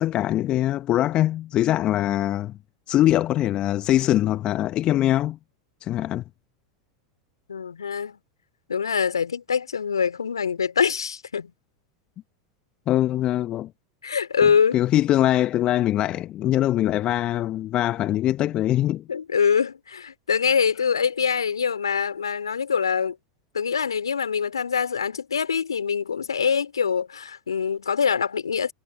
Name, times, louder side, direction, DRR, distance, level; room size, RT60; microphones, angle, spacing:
voice 1, 0.0-2.5 2.9-5.4 5.8-6.2 12.9-13.7 14.7-19.0, left 13 dB, 40° left, 1.3 m, -22 dB
voice 2, 7.5-8.2 8.7-11.5 14.0-14.8 19.1-23.2 23.5-28.7, left 6 dB, 80° left, 3.6 m, -24 dB
figure-of-eight pair, 85°, 3 cm